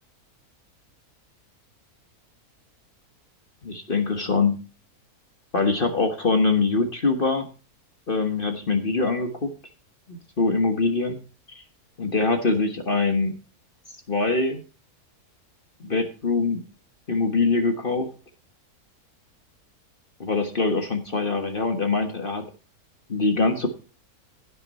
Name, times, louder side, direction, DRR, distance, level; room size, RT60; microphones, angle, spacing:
voice 1, 3.6-4.6 5.5-7.5 8.1-9.5 10.1-11.2 11.5-11.6 12.0-13.3 14.1-14.6 15.8-16.6 17.1-18.1 20.2-22.4 23.1-23.7, left 3 dB, 35° left, 5 dB, 1.5 m, -23 dB
16.0 x 6.3 x 4.2 m, 0.34 s
omnidirectional pair, 1.6 m